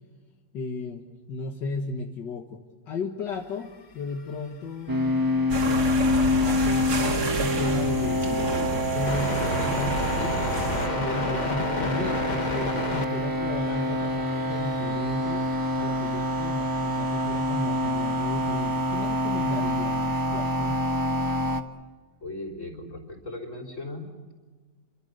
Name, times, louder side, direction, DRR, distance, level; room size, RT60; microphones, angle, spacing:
voice 1, 0.5-5.3 6.3-10.4 10.9-15.5 15.8-20.8, left 3 dB, 75° left, 3 dB, 2.0 m, -35 dB
sound 1, 4.3-4.4 4.9-5.0 5.4-20.0, left 3 dB, 30° left, 1.2 m, -36 dB
sound 2, 4.9-21.6, left 1 dB, 15° right, 0.9 m, -26 dB
sound 3, 5.5-10.9, right 3 dB, 60° right, 2.8 m, -30 dB
voice 2, 22.2-24.0, left 2 dB, 45° left, 5 dB, 4.2 m, -37 dB
29.0 x 23.5 x 6.6 m, 1.4 s
omnidirectional pair, 1.9 m